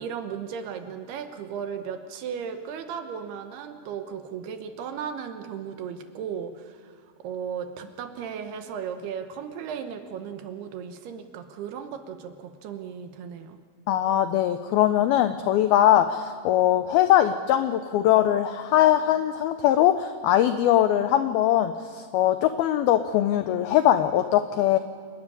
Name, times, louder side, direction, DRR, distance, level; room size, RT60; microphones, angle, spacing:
voice 1, 0.0-13.6, right 7 dB, 70° right, 7 dB, 2.8 m, -36 dB
voice 2, 13.9-24.8, left 12 dB, 90° left, 10 dB, 2.1 m, -21 dB
27.5 x 12.5 x 9.9 m, 2.1 s
omnidirectional pair, 5.2 m